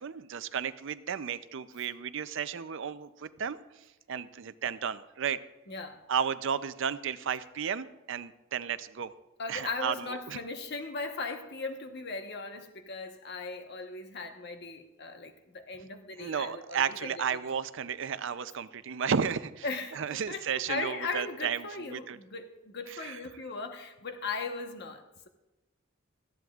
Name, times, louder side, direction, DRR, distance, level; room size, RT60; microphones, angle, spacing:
voice 1, 0.0-3.6 4.1-5.4 6.1-9.1 9.5-10.4 16.2-19.6 19.9-22.2 22.9-23.2, right 7 dB, 65° right, 13 dB, 0.5 m, -33 dB
voice 2, 5.7-6.0 9.4-17.2 19.6-25.3, left 3 dB, 55° left, 5 dB, 1.1 m, -38 dB
18.0 x 13.5 x 2.4 m, 1.0 s
head